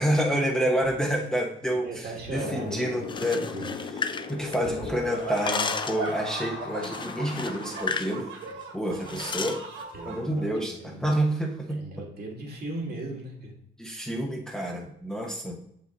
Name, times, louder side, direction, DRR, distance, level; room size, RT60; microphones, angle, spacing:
voice 1, 0.0-3.5 4.3-8.3 8.7-9.6 10.0-11.8 13.8-15.6, right 1 dB, 5° left, -1 dB, 1.0 m, -28 dB
voice 2, 1.8-3.1 3.5-3.7 9.0-9.3 9.9-11.0 11.7-13.5, right 2 dB, 50° right, -1 dB, 2.3 m, -38 dB
Wind, 2.3-7.8, left 4 dB, 55° left, 1.1 m, -38 dB
sound 1, 3.0-4.9 5.2-6.1 6.8-8.2 8.4-8.6 9.1-9.6, left 5 dB, 25° left, 0.5 m, -33 dB
sound 2, 5.1-10.2, right 3 dB, 85° right, 1.4 m, -39 dB
6.9 x 5.3 x 4.0 m, 0.71 s
cardioid pair, 90°, 20 cm